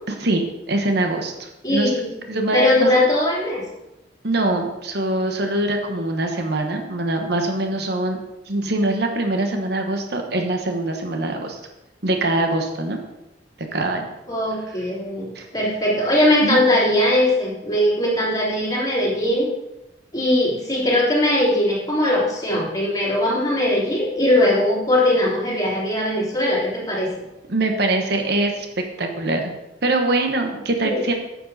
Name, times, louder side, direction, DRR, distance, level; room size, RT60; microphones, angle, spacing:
voice 1, 0.2-2.0 2.3-2.9 4.2-8.2 8.5-11.6 12.0-13.0 13.7-14.1 15.3-15.5 16.4-16.6 27.5-28.7 29.0-29.5 29.8-31.1, right 2 dB, 65° right, 4 dB, 1.2 m, -23 dB
voice 2, 1.6-2.1 2.5-3.6 14.3-19.5 20.1-27.1 30.8-31.0, left 1 dB, 20° left, -6 dB, 3.3 m, -20 dB
9.2 x 7.6 x 4.1 m, 0.93 s
head